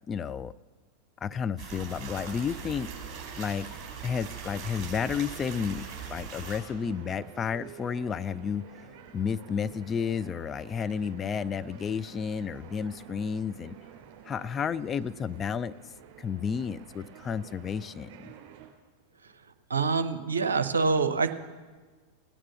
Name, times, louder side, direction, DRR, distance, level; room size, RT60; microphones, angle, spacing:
voice 1, 0.1-0.5 1.2-2.9 3.4-3.7 4.0-5.8 6.1-8.7 9.1-13.8 14.3-15.7 16.2-18.3, left 6 dB, 20° left, 13 dB, 0.3 m, -31 dB
sound 1, 1.6-6.6, right 6 dB, 25° right, 4.8 m, -41 dB
sound 2, 2.3-18.7, right 9 dB, 50° right, 3.2 m, -51 dB
voice 2, 19.7-21.5, right 4 dB, 70° right, 9 dB, 0.8 m, -26 dB
17.0 x 8.8 x 6.9 m, 1.4 s
figure-of-eight pair, 90°, 0 cm